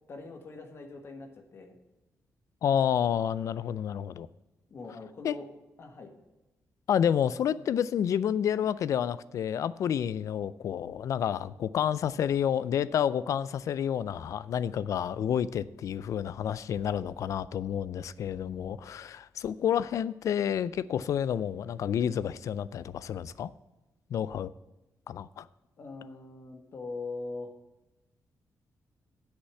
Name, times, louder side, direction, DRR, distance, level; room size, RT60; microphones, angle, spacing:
voice 1, 0.1-1.8 4.7-5.5 5.8-6.1 25.8-27.5, left 3 dB, 40° left, 5 dB, 1.5 m, -42 dB
voice 2, 2.6-4.3 5.2-5.3 6.9-23.5 24.1-24.5 25.1-25.5, left 9 dB, 60° left, 18 dB, 0.4 m, -29 dB
8.2 x 6.7 x 8.2 m, 1.0 s
wide cardioid pair, 175°, 6 cm